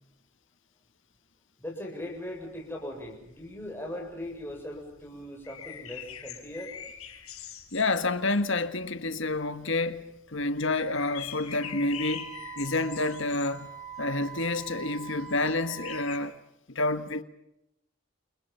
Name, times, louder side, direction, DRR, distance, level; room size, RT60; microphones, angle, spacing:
voice 1, 1.6-6.7, left 1 dB, 10° left, 7.0 m, -39 dB
sound 1, 2.1-9.4 9.7-10.0 10.3-16.2, left 9 dB, 90° left, 5.5 m, -44 dB
voice 2, 7.7-13.7 14.0-16.4 16.8-17.2, left 2 dB, 60° left, 1.6 m, -29 dB
Wind instrument woodwind instrument, 11.6-16.1, right 7 dB, 15° right, 5.5 m, -44 dB
30.0 x 29.5 x 5.8 m
head